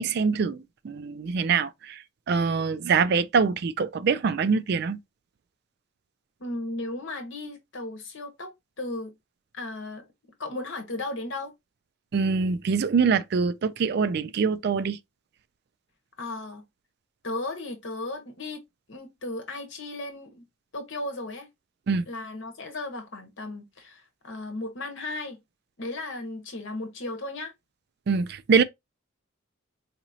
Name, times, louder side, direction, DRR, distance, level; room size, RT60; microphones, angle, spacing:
voice 1, 0.0-5.0 12.1-15.0 21.9-22.0 28.1-28.6, right 5 dB, 50° right, 0.3 m, -24 dB
voice 2, 6.4-8.5 8.8-9.1 9.5-10.0 10.4-11.5 16.2-16.6 17.2-18.6 18.9-20.4 20.7-21.5 22.1-25.4 25.8-27.5, left 2 dB, 65° left, 1.2 m, -35 dB
4.2 x 2.9 x 2.7 m
head